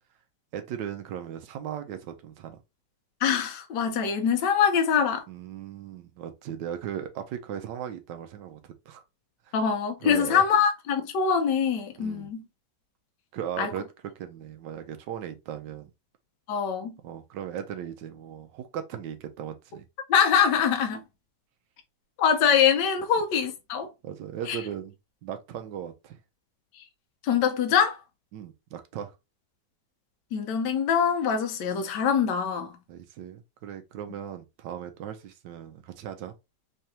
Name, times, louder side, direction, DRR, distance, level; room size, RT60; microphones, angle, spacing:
voice 1, 0.5-2.6 5.3-9.0 9.5-9.6 10.0-10.4 12.0-12.3 13.3-13.8 14.2-15.9 17.0-19.8 24.0-25.0 25.2-26.2 28.3-29.1 32.9-36.3, right 9 dB, 90° right, 1.3 m, -37 dB
voice 2, 3.2-5.2 9.5-12.4 13.6-13.7 16.5-17.0 20.1-21.0 22.2-23.9 24.5-24.6 27.2-28.0 30.3-32.8, left 7 dB, 75° left, 1.4 m, -24 dB
3.7 x 3.4 x 2.8 m
omnidirectional pair, 1.9 m